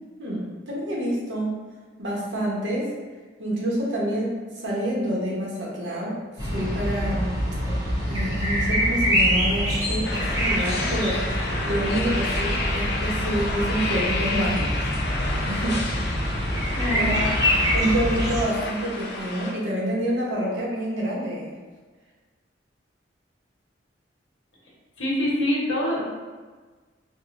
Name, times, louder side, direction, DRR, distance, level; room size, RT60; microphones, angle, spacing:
voice 1, 0.2-1.5 2.0-2.9 3.4-7.3 8.1-14.8 15.4-15.9 16.9-17.2 17.7-21.5, equal, 80° right, -4 dB, 0.9 m, -27 dB
sound 1, 6.4-18.4, equal, 20° right, 0.6 m, -25 dB
sound 2, 10.0-19.5, left 2 dB, 60° left, 0.5 m, -30 dB
voice 2, 16.7-17.2 25.0-26.1, left 1 dB, 85° left, -5 dB, 1.1 m, -25 dB
4.6 x 2.2 x 2.5 m, 1.4 s
head